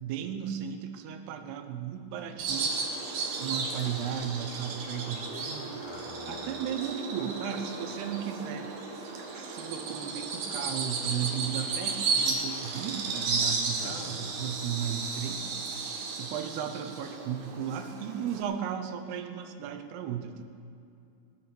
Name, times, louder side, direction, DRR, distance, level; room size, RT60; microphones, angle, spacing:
voice 1, 0.0-2.8 3.4-5.8 6.3-8.7 9.4-15.6 16.1-20.4, right 8 dB, 80° right, 7 dB, 2.9 m, -35 dB
Bird vocalization bird call bird song, 2.4-18.4, right 4 dB, 60° right, 2.4 m, -34 dB
voice 2, 5.8-6.6 13.8-14.2, left 5 dB, 75° left, 2 dB, 3.4 m, -46 dB
20.0 x 8.2 x 6.9 m, 2.5 s
omnidirectional pair, 4.7 m